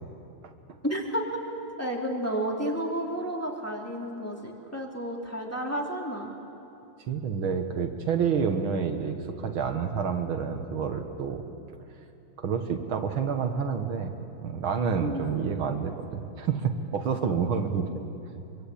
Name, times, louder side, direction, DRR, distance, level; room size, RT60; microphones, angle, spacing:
voice 1, 0.8-1.4 1.8-6.3 15.0-15.3, equal, 5° left, -1 dB, 2.9 m, -31 dB
voice 2, 7.1-11.4 12.4-17.9, right 6 dB, 70° right, 6 dB, 2.1 m, -29 dB
24.5 x 23.5 x 8.6 m, 2.8 s
omnidirectional pair, 2.3 m